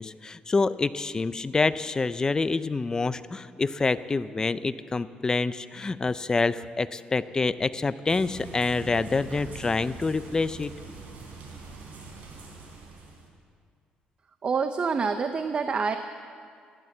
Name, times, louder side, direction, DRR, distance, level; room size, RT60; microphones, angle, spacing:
voice 1, 0.0-10.7, left 3 dB, 25° left, 14 dB, 0.5 m, -27 dB
sound 1, 8.1-13.3, right 4 dB, 65° right, 3.9 m, -43 dB
voice 2, 14.4-16.0, right 5 dB, 40° right, 8 dB, 0.7 m, -26 dB
15.0 x 11.0 x 7.9 m, 2.2 s
cardioid pair, 100°, 3 cm